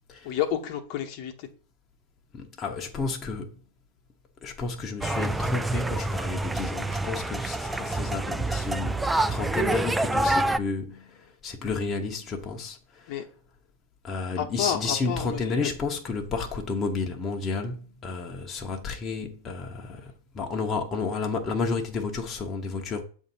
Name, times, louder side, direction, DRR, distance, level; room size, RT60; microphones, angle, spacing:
voice 1, 0.2-1.5 13.1-13.2 14.4-15.7, left 9 dB, 55° left, 1.0 m, -30 dB
voice 2, 2.3-3.6 4.4-13.2 14.0-23.0, left 4 dB, 30° left, 0.8 m, -31 dB
sound 1, 5.0-10.6, right 2 dB, 10° right, 0.3 m, -27 dB
7.1 x 2.7 x 5.4 m
hypercardioid pair, 110°, 0 cm